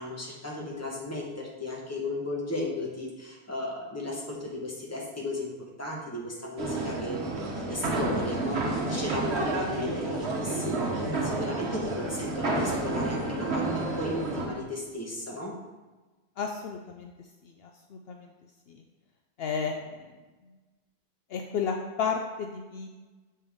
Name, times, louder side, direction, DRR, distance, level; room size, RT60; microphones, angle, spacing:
voice 1, 0.0-5.5 5.8-7.2 7.7-15.6, left 2 dB, 15° left, -2 dB, 1.2 m, -35 dB
sound 1, 6.6-14.5, right 2 dB, 70° right, 1.3 m, -30 dB
voice 2, 16.4-17.1 17.9-18.3 19.4-19.9 21.3-23.0, left 6 dB, 70° left, 3 dB, 0.7 m, -32 dB
6.8 x 5.5 x 3.6 m, 1.2 s
omnidirectional pair, 1.1 m